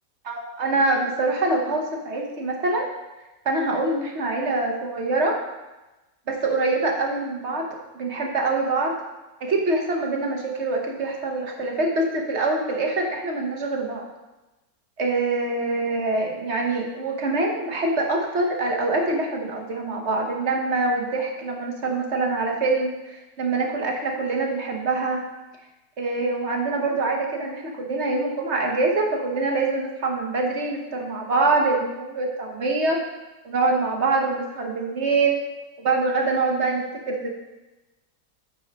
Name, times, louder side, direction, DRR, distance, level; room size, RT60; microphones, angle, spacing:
voice 1, 0.2-2.9 3.4-5.4 6.3-7.7 7.9-8.9 9.4-14.0 15.0-25.2 26.0-33.0 33.4-35.4 35.8-37.3, right 3 dB, 45° right, 1 dB, 1.1 m, -24 dB
8.0 x 4.1 x 5.3 m, 1.1 s
omnidirectional pair, 1.9 m